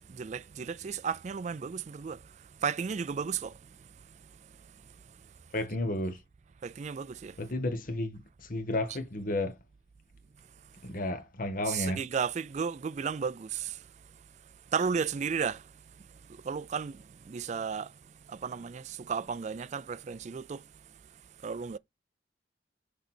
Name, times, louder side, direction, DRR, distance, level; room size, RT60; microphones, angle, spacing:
voice 1, 0.1-2.2 2.6-3.5 6.6-7.3 11.7-13.8 14.7-15.6 16.4-17.0 17.3-17.9 18.3-20.6 21.4-21.8, right 6 dB, 40° right, 0.4 m, -33 dB
voice 2, 5.5-6.2 7.4-9.6 10.8-12.0, left 1 dB, 50° left, 1.5 m, -32 dB
6.7 x 5.1 x 4.4 m
head